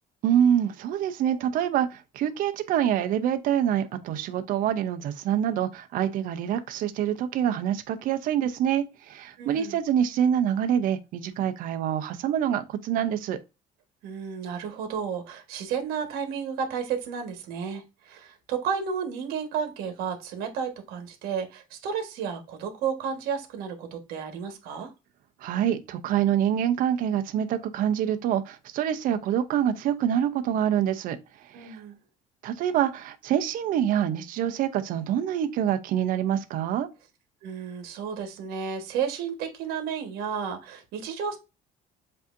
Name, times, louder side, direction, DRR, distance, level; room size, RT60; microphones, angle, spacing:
voice 1, 0.2-13.4 25.4-31.2 31.5-31.8 32.4-36.9, right 9 dB, 60° right, 0.6 m, -26 dB
voice 2, 9.4-9.8 14.0-24.9 31.5-32.0 37.4-41.4, right 7 dB, 80° right, 1.4 m, -32 dB
7.6 x 2.7 x 2.5 m
cardioid pair, 145°, 16 cm